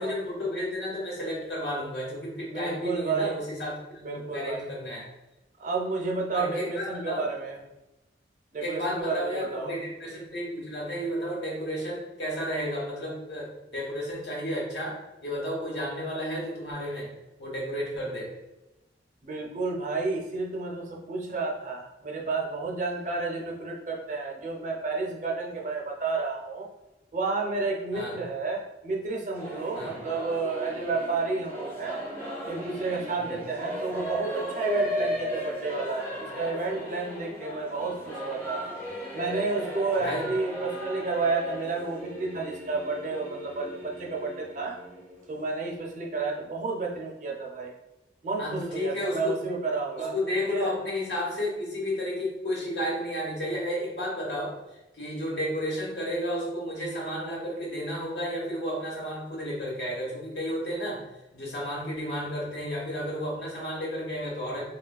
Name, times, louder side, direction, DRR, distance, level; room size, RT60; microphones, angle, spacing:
voice 1, 0.0-5.1 6.3-7.3 8.6-17.1 17.4-18.3 27.9-28.2 29.7-30.0 33.2-33.3 40.0-40.3 48.4-49.4 50.0-54.6 54.9-61.1 61.3-64.7, equal, 70° left, -4 dB, 1.0 m, -32 dB
voice 2, 2.5-3.3 4.0-4.6 5.6-7.6 8.5-9.7 19.2-26.7 27.1-32.0 32.5-38.6 39.1-44.8 45.3-47.7 48.2-50.1 50.5-50.7, right 3 dB, 45° right, -1 dB, 0.5 m, -31 dB
Singing / Musical instrument, 29.3-45.6, equal, 10° left, 0.6 m, -36 dB
3.4 x 2.4 x 2.3 m, 0.99 s
head